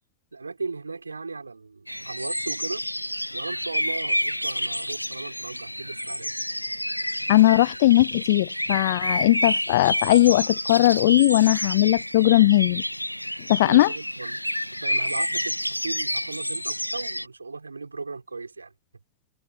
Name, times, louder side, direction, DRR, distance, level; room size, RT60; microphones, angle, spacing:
voice 1, 0.3-2.9 3.3-6.3 13.6-14.5 14.8-18.7, right 4 dB, 80° right, 5.6 m, -36 dB
sound 1, 1.9-17.3, equal, 90° left, 0.8 m, -29 dB
voice 2, 7.3-12.8 13.5-13.9, left 16 dB, 55° left, 0.5 m, -19 dB
figure-of-eight pair, 90°, 0 cm